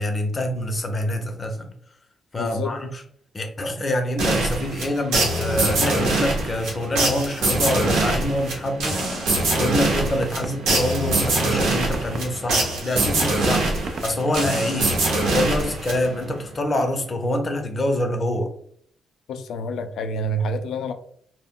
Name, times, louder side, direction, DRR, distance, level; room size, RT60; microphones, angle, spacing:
voice 1, 0.0-1.7 2.3-3.0 3.3-18.5, left 1 dB, 40° left, 4 dB, 0.6 m, -26 dB
voice 2, 2.4-2.8 19.3-20.9, equal, 80° left, 7 dB, 0.3 m, -28 dB
sound 1, 4.2-16.3, right 2 dB, 90° right, 0.8 m, -23 dB
sound 2, 7.2-9.2 9.6-9.7 10.0-14.9, right 3 dB, 60° right, 0.4 m, -35 dB
2.1 x 2.1 x 3.6 m, 0.62 s
cardioid pair, 70°, 0 cm